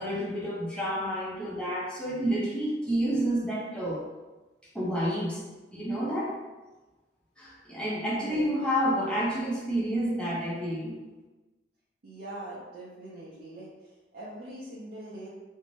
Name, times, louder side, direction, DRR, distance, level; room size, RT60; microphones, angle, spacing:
voice 1, 0.0-4.0 4.7-5.4 5.7-6.4 7.4-11.0, equal, 5° left, -6 dB, 0.6 m, -29 dB
voice 2, 12.0-13.7 14.1-15.3, right 1 dB, 60° right, -8 dB, 0.5 m, -42 dB
2.6 x 2.1 x 2.9 m, 1.2 s
head